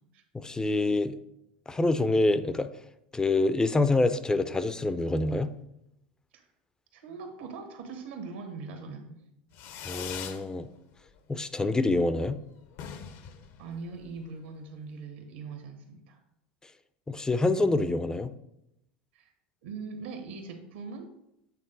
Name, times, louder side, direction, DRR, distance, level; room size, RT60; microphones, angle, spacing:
voice 1, 0.4-1.2 1.7-2.7 3.1-5.5 9.9-10.7 11.3-12.4 17.1-18.3, left 2 dB, 10° left, 12 dB, 0.4 m, -26 dB
voice 2, 6.9-9.2 13.6-16.2 19.1-19.3 19.6-21.1, right 4 dB, 75° right, 5 dB, 1.4 m, -41 dB
Fireworks, 9.5-10.5 10.8-11.4 11.6-11.7 12.0-12.1 12.3-12.4 12.7-14.3, left 8 dB, 55° left, 0.7 m, -42 dB
8.4 x 3.6 x 4.0 m, 0.82 s
hypercardioid pair, 95°, 6 cm